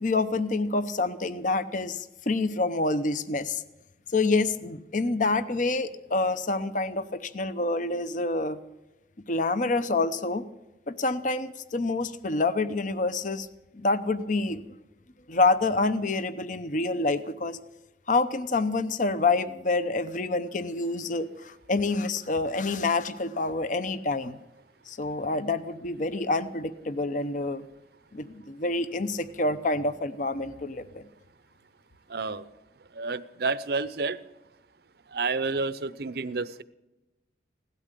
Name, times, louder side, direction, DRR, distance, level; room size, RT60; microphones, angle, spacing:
voice 1, 0.0-3.6 4.1-8.6 9.3-10.4 10.9-13.5 13.7-14.6 15.3-17.6 18.1-24.4 24.9-27.6 28.1-31.0, left 3 dB, 45° left, 13 dB, 0.8 m, -27 dB
voice 2, 32.1-32.4 33.0-34.2 35.1-36.6, right 4 dB, 55° right, 15 dB, 0.7 m, -29 dB
17.0 x 12.5 x 6.7 m, 1.0 s
head